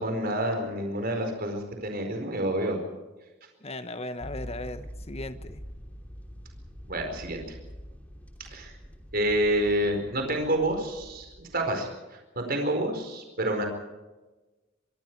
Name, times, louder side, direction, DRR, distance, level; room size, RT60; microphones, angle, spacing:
voice 1, 0.0-2.8 6.9-7.4 8.5-8.7 9.1-13.7, right 1 dB, 50° right, 4 dB, 4.5 m, -28 dB
voice 2, 3.6-5.6, left 2 dB, 30° left, 10 dB, 1.3 m, -37 dB
sound 1, 4.2-11.7, equal, 10° left, 2.9 m, -45 dB
26.0 x 22.5 x 4.7 m, 1.2 s
head